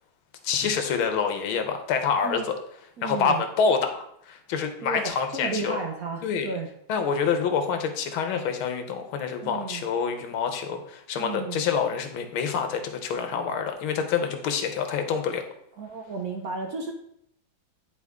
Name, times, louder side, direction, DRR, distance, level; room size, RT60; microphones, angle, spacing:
voice 1, 0.4-2.5 3.0-4.0 4.3-5.8 6.2-6.5 6.9-15.4, left 6 dB, 90° left, 6 dB, 1.7 m, -27 dB
voice 2, 3.0-3.4 4.8-6.7 9.4-9.8 11.2-11.6 15.8-16.9, right 4 dB, 65° right, 3 dB, 0.9 m, -33 dB
9.5 x 4.4 x 3.6 m, 0.73 s
omnidirectional pair, 2.2 m